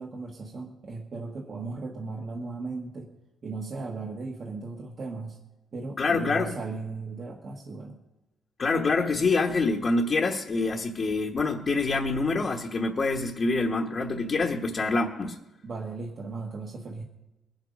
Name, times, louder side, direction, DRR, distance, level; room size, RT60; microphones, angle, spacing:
voice 1, 0.0-3.1 3.4-5.4 5.7-8.0 15.6-17.0, right 3 dB, 40° right, 0 dB, 1.5 m, -36 dB
voice 2, 6.0-6.5 8.6-15.4, left 3 dB, 35° left, 0 dB, 1.2 m, -26 dB
21.5 x 8.0 x 5.2 m, 1.0 s
cardioid pair, 120°, 0 cm